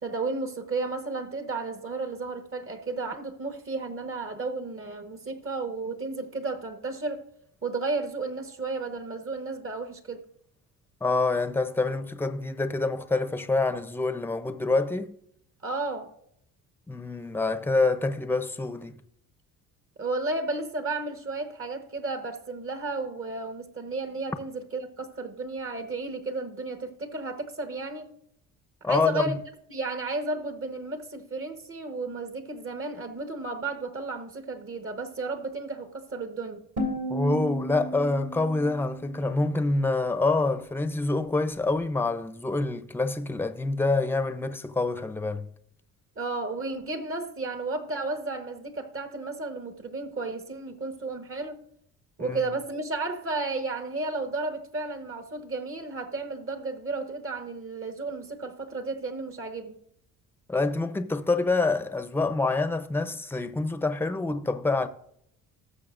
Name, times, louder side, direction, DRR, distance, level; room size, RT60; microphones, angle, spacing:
voice 1, 0.0-7.3 7.6-10.2 15.6-16.1 20.0-28.1 28.8-29.4 29.7-36.6 46.2-51.6 52.2-59.8, right 3 dB, 40° right, 1.4 m, -33 dB
voice 2, 11.0-15.2 16.9-18.9 28.8-29.4 37.1-45.5 52.2-52.4 60.5-64.9, left 3 dB, 5° left, 0.7 m, -26 dB
sound 1, 36.8-39.8, equal, 60° right, 2.8 m, -34 dB
19.0 x 6.7 x 2.6 m
cardioid pair, 85°, 32 cm